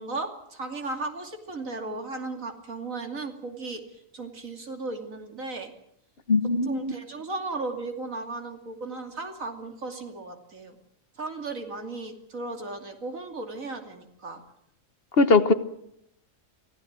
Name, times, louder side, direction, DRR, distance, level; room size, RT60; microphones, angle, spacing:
voice 1, 0.0-3.8 4.1-5.7 6.6-10.8 11.2-14.4, right 3 dB, 85° right, 5 dB, 3.2 m, -35 dB
voice 2, 6.3-6.9 15.2-15.5, left 3 dB, 50° left, 12 dB, 1.3 m, -20 dB
24.5 x 16.0 x 8.9 m, 0.76 s
omnidirectional pair, 1.4 m